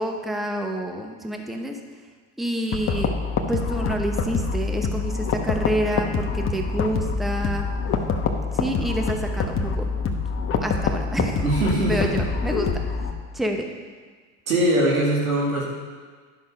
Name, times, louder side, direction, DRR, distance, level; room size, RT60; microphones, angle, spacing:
voice 1, 0.0-1.8 2.4-3.1 3.5-7.7 8.5-9.9 10.6-11.5 11.9-13.0 13.3-13.6, right 1 dB, ahead, 3 dB, 0.9 m, -28 dB
sound 1, 2.7-13.1, left 4 dB, 30° left, 1.1 m, -26 dB
voice 2, 11.4-12.1 14.5-15.6, right 1 dB, 90° right, -4 dB, 2.3 m, -21 dB
11.0 x 6.0 x 5.3 m, 1.5 s
hypercardioid pair, 100°, 40 cm